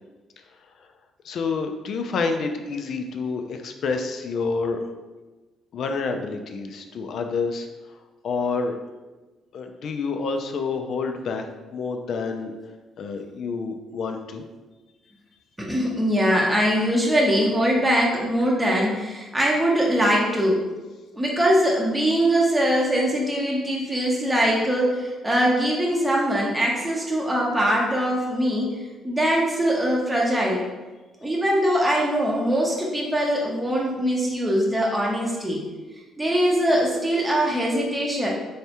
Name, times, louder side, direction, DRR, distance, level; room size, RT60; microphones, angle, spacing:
voice 1, 1.2-4.9 5.7-7.7 8.2-8.8 9.5-11.5 11.7-12.5 13.0-14.4, left 4 dB, 60° left, 5 dB, 0.4 m, -28 dB
voice 2, 15.6-20.6 21.2-30.6 31.2-35.6 36.2-38.3, equal, 10° right, -3 dB, 0.7 m, -22 dB
3.5 x 3.1 x 2.8 m, 1.2 s
cardioid pair, 90°, 0 cm